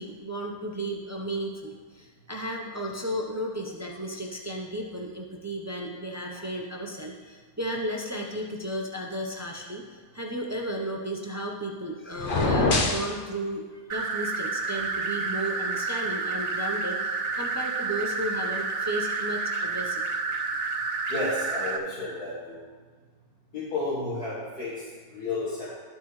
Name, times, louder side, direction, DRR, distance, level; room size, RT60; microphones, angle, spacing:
voice 1, 0.0-20.1, right 1 dB, 20° right, 0 dB, 0.4 m, -34 dB
sound 1, 12.2-13.1, left 3 dB, 40° left, 0.9 m, -23 dB
sound 2, 13.9-21.8, right 4 dB, 55° right, 0.8 m, -30 dB
voice 2, 21.1-22.6 23.5-25.7, left 2 dB, 80° left, -11 dB, 2.5 m, -32 dB
13.0 x 6.0 x 3.2 m, 1.4 s
omnidirectional pair, 1.6 m